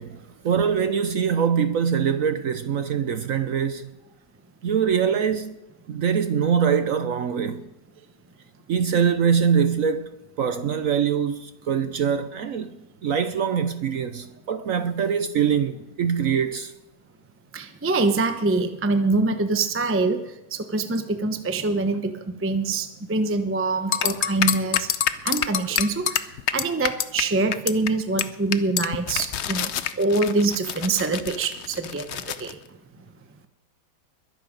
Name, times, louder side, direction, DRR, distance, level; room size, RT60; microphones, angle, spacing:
voice 1, 0.0-3.9 4.6-5.5 5.9-7.6 8.7-10.1 10.4-12.8 13.0-16.7, right 7 dB, 60° right, 0.9 m, -23 dB
voice 2, 17.5-24.9 25.2-32.6, right 3 dB, 15° right, 0.5 m, -25 dB
sound 1, 23.9-27.2 27.5-27.9 28.2-28.3 28.5-32.5, left 9 dB, 65° left, 0.6 m, -26 dB
22.0 x 8.3 x 5.2 m
omnidirectional pair, 1.9 m